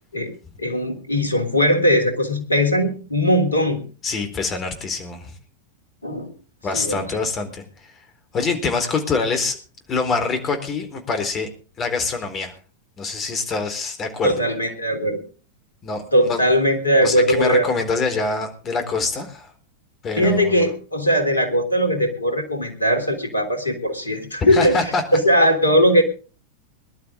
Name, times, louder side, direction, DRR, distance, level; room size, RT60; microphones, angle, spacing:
voice 1, 0.6-3.8 6.0-6.3 6.7-7.1 14.2-15.2 16.1-17.6 20.2-26.0, equal, 80° left, 7 dB, 3.5 m, -19 dB
voice 2, 4.0-5.4 6.6-7.9 8.3-9.6 9.9-11.5 11.8-12.5 13.0-14.3 15.8-16.4 17.0-19.5 20.0-20.5 24.4-25.0, left 4 dB, 25° left, 6 dB, 4.1 m, -25 dB
21.5 x 12.0 x 3.8 m, 0.37 s
figure-of-eight pair, 90°, 0 cm